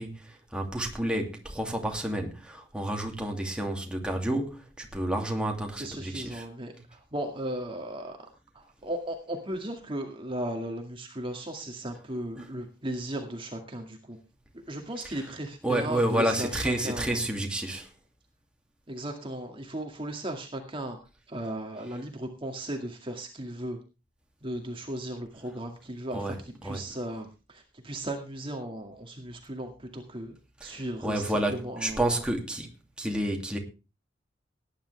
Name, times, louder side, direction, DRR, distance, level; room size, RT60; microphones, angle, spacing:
voice 1, 0.0-6.4 15.6-17.9 26.1-26.4 26.6-26.8 30.6-32.7 33.0-33.6, right 1 dB, 5° right, 2.6 m, -30 dB
voice 2, 5.8-8.2 8.5-14.2 14.5-17.2 18.9-21.0 21.3-23.8 24.4-30.4 30.6-32.2, right 1 dB, 30° right, 2.1 m, -36 dB
18.5 x 10.5 x 3.4 m
head